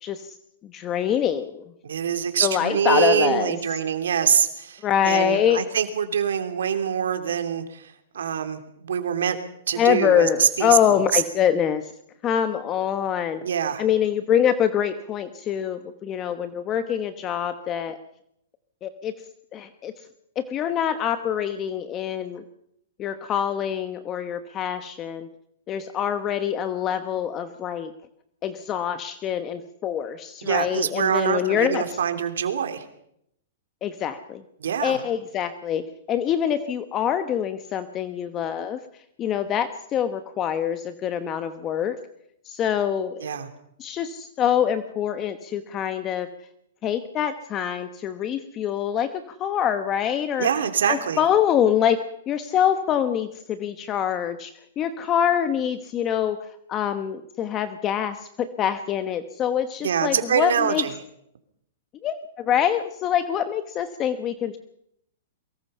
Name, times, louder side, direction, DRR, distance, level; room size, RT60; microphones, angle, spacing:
voice 1, 0.0-0.4 0.6-1.6 2.4-3.6 4.8-5.7 9.8-11.9 12.2-13.4 13.8-18.0 18.8-19.1 19.5-20.1 20.4-22.4 23.0-25.3 25.7-27.9 28.4-32.0 33.8-34.4 34.8-38.8 39.2-42.0 42.4-43.3 43.8-46.3 46.8-50.5 50.9-60.8 62.0-64.6, left 9 dB, 25° left, 10 dB, 1.1 m, -25 dB
voice 2, 1.8-9.4 9.7-10.8 11.1-11.2 13.4-13.8 30.4-32.8 34.6-35.0 43.2-43.5 50.4-51.2 59.8-60.9, right 8 dB, 85° right, 7 dB, 3.0 m, -24 dB
23.5 x 22.0 x 5.6 m, 0.75 s
hypercardioid pair, 150°, 0 cm